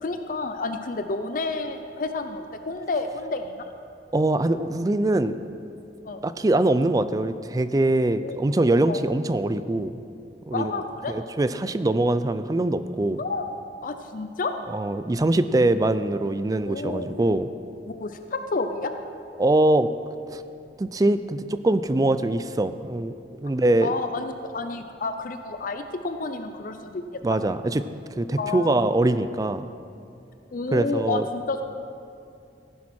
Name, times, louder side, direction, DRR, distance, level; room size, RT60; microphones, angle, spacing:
voice 1, 0.0-3.7 6.1-6.2 8.2-8.4 8.9-9.0 10.5-11.1 13.2-13.4 13.8-14.5 16.6-17.1 18.0-18.9 23.8-27.2 28.4-28.8 30.5-31.6, left 3 dB, 50° left, 7 dB, 0.5 m, -30 dB
voice 2, 4.1-5.4 6.2-10.0 10.5-10.7 11.1-13.2 14.7-17.5 19.4-19.9 20.3-20.4 20.8-23.1 23.4-23.9 27.2-27.8 28.2-29.7 30.7-31.2, right 2 dB, 20° right, 12 dB, 0.3 m, -23 dB
15.5 x 10.5 x 4.3 m, 2.6 s
head